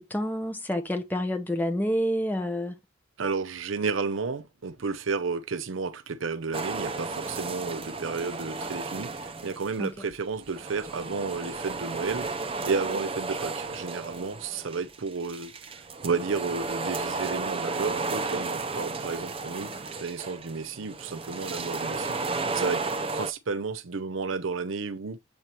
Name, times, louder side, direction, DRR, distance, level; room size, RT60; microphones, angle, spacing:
voice 1, 0.0-2.8 9.8-9.9, equal, 10° left, 0.9 m, -28 dB
voice 2, 3.2-12.3 12.6-15.5 16.0-19.7 20.0-22.9 23.1-25.2, right 4 dB, 85° right, 0.7 m, -32 dB
sound 1, 6.5-9.9 10.1-23.3, right 3 dB, 30° right, 0.5 m, -33 dB
7.6 x 4.4 x 3.1 m
head